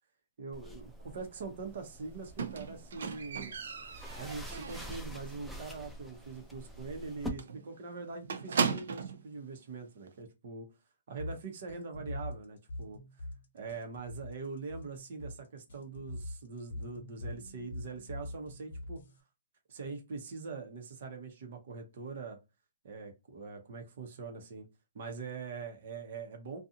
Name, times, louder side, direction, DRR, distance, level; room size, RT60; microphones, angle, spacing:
voice 1, 0.4-3.6 4.2-10.7 11.1-13.3 13.5-19.0 19.7-22.4 22.8-24.7 24.9-26.6, right 4 dB, 55° right, 0.9 m, -43 dB
sound 1, 0.5-7.3, equal, ahead, 0.4 m, -46 dB
Squeak, 2.4-5.2 5.5-5.9 6.2-6.3 6.6-6.7 7.0-7.1 7.4-9.2 10.1-10.2, right 6 dB, 75° right, 0.5 m, -36 dB
sound 2, 11.2-19.2, left 1 dB, 65° left, 0.8 m, -43 dB
2.8 x 2.4 x 2.5 m
hypercardioid pair, 160°, 0 cm